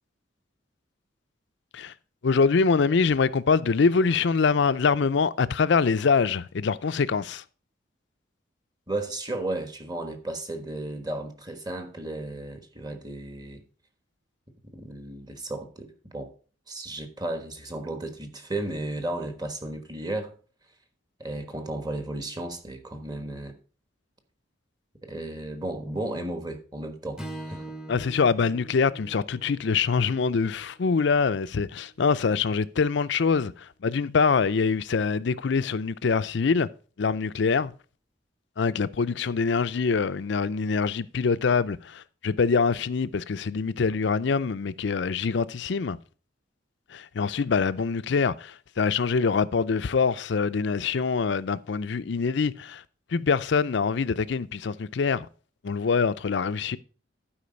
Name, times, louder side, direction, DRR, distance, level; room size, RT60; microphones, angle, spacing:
voice 1, 2.2-7.4 27.9-36.7 37.0-37.7 38.6-46.0 46.9-52.8 53.1-55.3 55.6-56.8, left 5 dB, 60° left, 0.5 m, -24 dB
voice 2, 8.9-13.6 14.6-16.3 16.7-20.3 21.2-23.6 25.0-27.7, right 2 dB, 20° right, 1.3 m, -34 dB
Strum, 27.2-31.5, right 1 dB, 5° right, 0.8 m, -43 dB
11.5 x 5.0 x 5.2 m
head